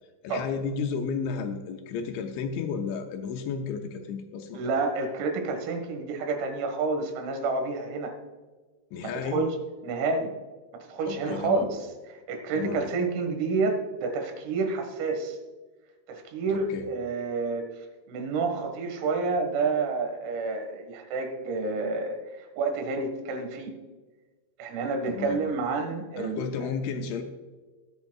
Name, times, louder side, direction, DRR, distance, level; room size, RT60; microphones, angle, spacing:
voice 1, 0.2-4.8 8.9-9.5 11.1-11.7 12.5-12.8 16.5-16.9 25.1-25.4 26.2-27.2, left 6 dB, 80° left, 5 dB, 2.9 m, -32 dB
voice 2, 4.6-8.2 9.0-9.6 9.8-10.3 10.7-11.8 12.3-15.4 16.1-17.7 18.1-23.7 24.6-26.7, right 4 dB, 90° right, 4 dB, 4.3 m, -29 dB
21.5 x 8.2 x 2.3 m, 1.3 s
omnidirectional pair, 5.8 m